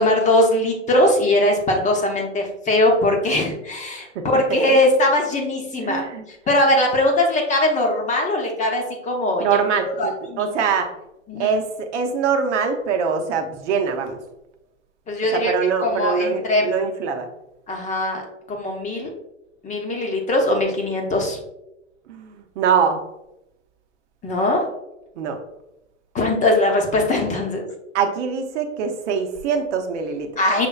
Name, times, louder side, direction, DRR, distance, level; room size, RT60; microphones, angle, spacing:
voice 1, 0.0-4.1 4.3-6.0 6.5-9.5 10.0-10.5 11.3-11.5 15.1-15.5 15.8-16.7 17.7-18.2 18.5-19.1 19.6-21.4 24.2-24.6 26.1-27.6 30.4-30.7, left 1 dB, 20° left, 2 dB, 0.7 m, -20 dB
voice 2, 5.7-6.2 9.4-10.9 11.4-14.2 15.3-17.3 22.1-23.0 25.2-25.4 27.9-30.3, right 6 dB, 65° right, 5 dB, 0.8 m, -23 dB
5.9 x 3.2 x 2.3 m, 0.88 s
hypercardioid pair, 115°, 38 cm